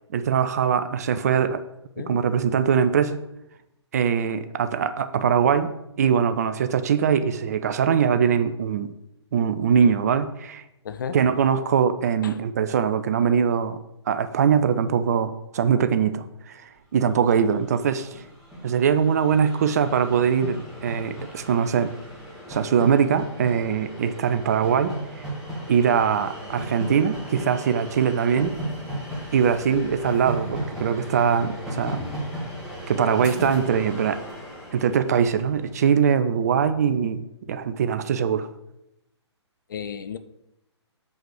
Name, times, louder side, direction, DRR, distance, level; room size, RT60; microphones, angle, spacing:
voice 1, 0.1-1.6 2.0-3.2 3.9-8.9 9.3-10.6 11.1-13.8 14.1-16.6 16.9-18.2 18.6-21.9 22.5-25.0 25.7-28.6 29.3-32.0 32.9-34.2 34.7-38.5, right 7 dB, 35° right, 11 dB, 0.4 m, -22 dB
voice 2, 10.8-11.2 12.2-12.4 39.7-40.2, left 7 dB, 45° left, 11 dB, 0.5 m, -33 dB
Train, 17.1-17.2 17.4-35.8, right 1 dB, 5° right, 2.1 m, -36 dB
sound 1, 28.3-34.4, left 2 dB, 25° left, 2.2 m, -41 dB
7.5 x 5.4 x 4.9 m, 0.86 s
figure-of-eight pair, 130°, 15 cm